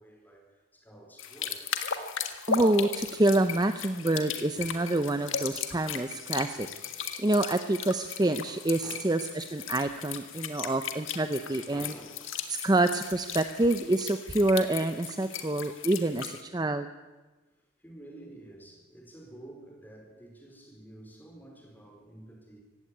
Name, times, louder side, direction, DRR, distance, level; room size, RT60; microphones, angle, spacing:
voice 1, 0.0-2.0 4.6-4.7 5.9-6.3 8.8-9.1 11.6-12.2 17.8-22.6, right 1 dB, 10° left, 1 dB, 4.6 m, -50 dB
sound 1, 1.2-16.4, left 7 dB, 65° left, 1.8 m, -37 dB
voice 2, 2.5-6.7 7.2-11.9 12.5-16.9, right 2 dB, 20° right, 9 dB, 0.6 m, -27 dB
16.5 x 16.0 x 9.9 m, 1.2 s
head